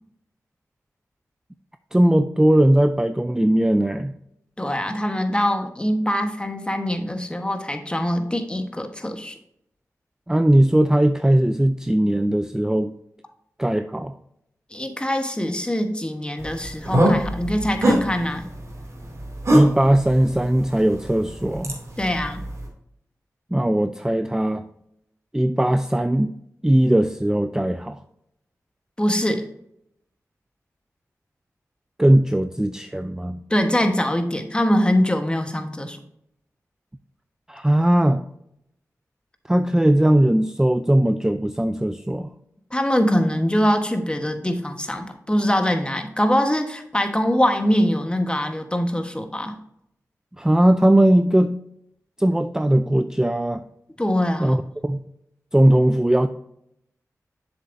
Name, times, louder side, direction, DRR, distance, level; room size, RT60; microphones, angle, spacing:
voice 1, 1.9-4.1 10.3-12.9 13.6-14.1 19.5-21.8 23.5-24.6 25.3-26.3 26.6-28.0 32.0-33.4 37.5-38.2 39.5-42.3 50.4-51.6 52.2-53.6 54.4-54.6 54.8-55.0 55.5-56.3, right 1 dB, 10° right, 9 dB, 0.4 m, -19 dB
voice 2, 4.6-9.4 14.7-18.4 22.0-22.4 29.0-29.5 33.5-36.0 42.7-49.6 54.0-54.6, equal, 15° left, 6 dB, 1.2 m, -23 dB
sound 1, 16.4-22.7, right 1 dB, 55° right, 2.6 m, -25 dB
7.4 x 6.9 x 2.6 m, 0.75 s
cardioid pair, 50°, 6 cm